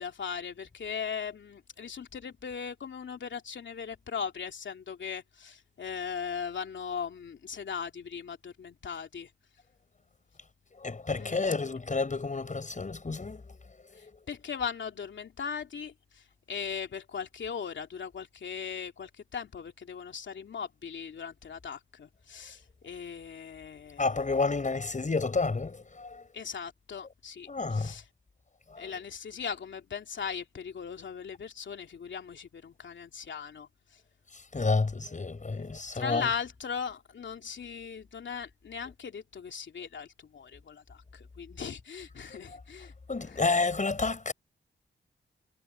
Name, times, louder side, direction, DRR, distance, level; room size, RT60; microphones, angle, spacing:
voice 1, 0.0-9.3 11.2-11.4 14.0-24.2 26.3-28.0 28.8-34.0 35.5-42.9 43.2-43.4, left 6 dB, 80° left, 3.0 m, -39 dB
voice 2, 10.8-13.6 14.0-14.1 24.0-26.2 27.5-27.9 28.7-28.9 34.3-36.3 43.1-44.3, left 3 dB, 40° left, 6.2 m, -30 dB
cardioid pair, 70°, 19 cm